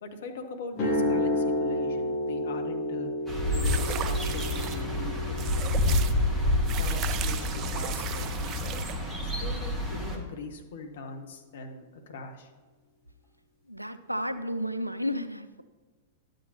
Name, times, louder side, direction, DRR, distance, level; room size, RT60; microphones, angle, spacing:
voice 1, 0.0-3.1 3.5-5.4 5.8-6.0 6.8-8.9 9.2-12.5, left 3 dB, 55° left, 4 dB, 1.1 m, -41 dB
sound 1, 0.7-8.8, left 1 dB, 40° left, 2.3 m, -32 dB
sound 2, 3.3-10.2, left 1 dB, 5° right, 1.5 m, -28 dB
sound 3, 3.6-4.8 5.4-6.1 6.6-9.0, right 9 dB, 30° right, 0.4 m, -37 dB
voice 2, 13.7-15.6, equal, 90° right, 12 dB, 0.4 m, -32 dB
11.5 x 7.8 x 2.9 m, 1.4 s
figure-of-eight pair, 100°, 0 cm